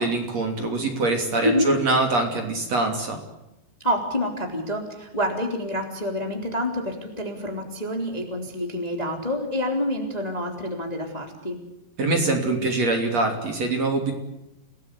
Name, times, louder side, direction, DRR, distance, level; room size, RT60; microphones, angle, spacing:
voice 1, 0.0-3.2 12.0-14.1, right 2 dB, 40° right, 3 dB, 3.9 m, -24 dB
voice 2, 3.8-11.6, left 1 dB, 10° left, 3 dB, 2.9 m, -27 dB
29.5 x 19.0 x 8.3 m, 0.92 s
omnidirectional pair, 4.9 m